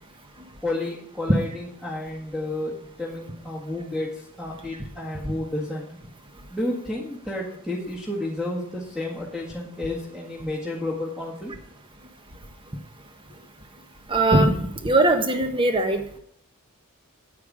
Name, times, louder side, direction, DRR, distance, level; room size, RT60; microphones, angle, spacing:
voice 1, 0.6-5.8 6.5-11.5, left 1 dB, 5° right, -4 dB, 1.7 m, -31 dB
voice 2, 14.1-16.2, right 2 dB, 20° right, 6 dB, 1.2 m, -21 dB
9.3 x 9.0 x 5.0 m, 0.70 s
head